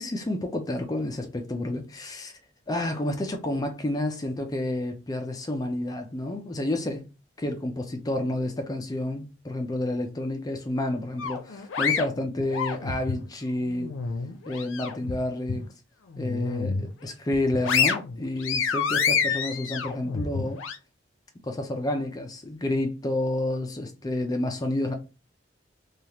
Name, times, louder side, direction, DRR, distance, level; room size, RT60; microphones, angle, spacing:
voice 1, 0.0-2.3 2.7-7.0 7.4-13.9 14.5-15.6 16.2-20.6 21.4-24.9, left 1 dB, 20° left, 0.4 m, -30 dB
sound 1, 11.2-13.2 13.7-15.1 15.5-15.6 16.1-16.9 17.3-20.8, left 6 dB, 90° left, 0.5 m, -28 dB
3.3 x 2.3 x 2.8 m
head